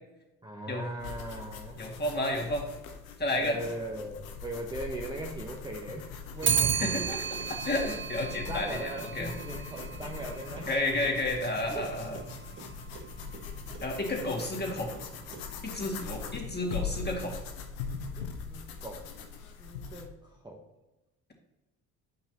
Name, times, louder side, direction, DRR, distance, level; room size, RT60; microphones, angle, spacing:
voice 1, 0.4-1.8 3.4-6.9 8.5-10.7 11.7-11.9 16.4-16.5 18.2-19.1 19.6-20.6, right 1 dB, 10° right, -1 dB, 1.1 m, -40 dB
sound 1, 1.0-20.1, left 6 dB, 80° left, 0.9 m, -42 dB
voice 2, 1.8-2.7 3.2-3.6 6.7-9.3 10.7-12.2 13.8-14.9 15.6-17.4, left 1 dB, 25° left, 0 dB, 2.3 m, -31 dB
Clock, 6.4-15.8, right 7 dB, 30° right, 0.7 m, -35 dB
9.6 x 5.5 x 3.0 m, 1.0 s
hypercardioid pair, 50°, 40 cm